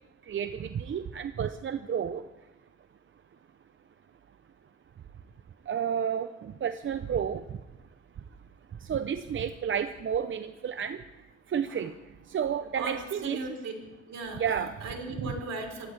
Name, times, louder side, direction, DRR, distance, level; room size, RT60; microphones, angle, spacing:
voice 1, 0.3-2.2 5.7-7.4 8.9-11.0 11.5-11.9 12.3-13.4 14.3-14.7 15.2-15.3, right 8 dB, 40° right, 10 dB, 0.6 m, -31 dB
voice 2, 12.7-13.7 14.1-15.9, right 3 dB, 60° right, 2 dB, 4.0 m, -37 dB
24.5 x 16.0 x 3.4 m, 1.1 s
cardioid pair, 90°, 30 cm